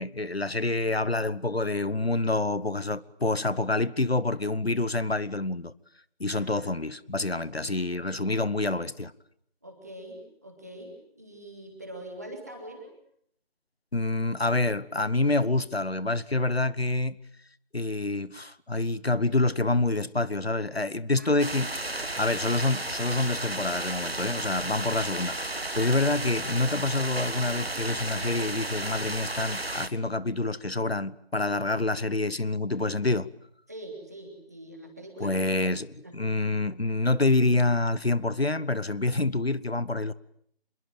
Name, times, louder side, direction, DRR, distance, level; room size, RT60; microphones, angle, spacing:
voice 1, 0.0-5.7 6.2-9.1 13.9-17.2 17.7-21.7 22.2-33.3 35.2-40.1, left 2 dB, 75° left, 1.2 m, -27 dB
voice 2, 6.3-6.9 7.3-7.4 9.6-12.9 21.2-21.5 31.8-32.3 33.7-35.5 36.0-36.1, right 1 dB, 15° right, 3.2 m, -44 dB
sound 1, 21.4-29.9, right 2 dB, 70° right, 1.7 m, -33 dB
27.0 x 22.5 x 9.1 m
figure-of-eight pair, 175°, 31 cm